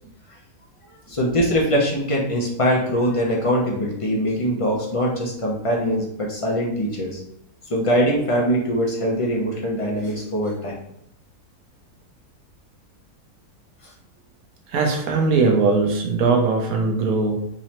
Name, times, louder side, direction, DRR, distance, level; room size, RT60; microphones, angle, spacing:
voice 1, 1.1-7.2 7.7-10.7, equal, 40° left, -3 dB, 0.4 m, -22 dB
voice 2, 14.7-17.5, right 4 dB, 70° right, 2 dB, 1.2 m, -20 dB
3.8 x 3.1 x 2.9 m, 0.79 s
omnidirectional pair, 1.6 m